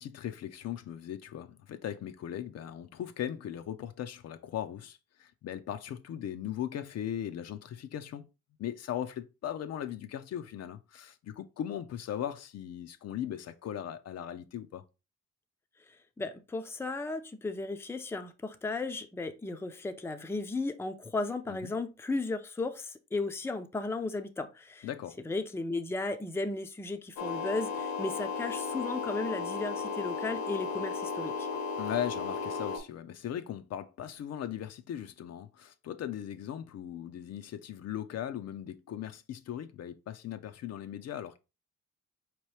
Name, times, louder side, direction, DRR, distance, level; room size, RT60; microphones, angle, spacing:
voice 1, 0.0-8.3 8.6-14.8 21.5-21.7 24.8-25.2 31.8-41.4, left 10 dB, 60° left, 0.5 m, -38 dB
voice 2, 16.2-24.9 25.3-31.5, left 3 dB, 10° left, 0.5 m, -35 dB
sound 1, 27.2-32.8, left 5 dB, 75° left, 1.0 m, -35 dB
4.4 x 3.0 x 3.2 m
cardioid pair, 90°, 30 cm